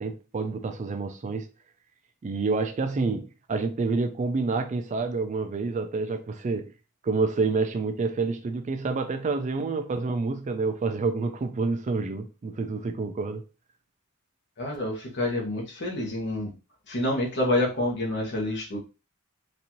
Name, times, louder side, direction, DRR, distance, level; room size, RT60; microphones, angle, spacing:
voice 1, 0.0-1.5 2.2-6.7 7.0-13.4, right 4 dB, 35° right, 0.3 m, -28 dB
voice 2, 14.6-16.5 16.9-18.8, left 1 dB, 55° left, 1.0 m, -28 dB
4.0 x 2.6 x 2.9 m
head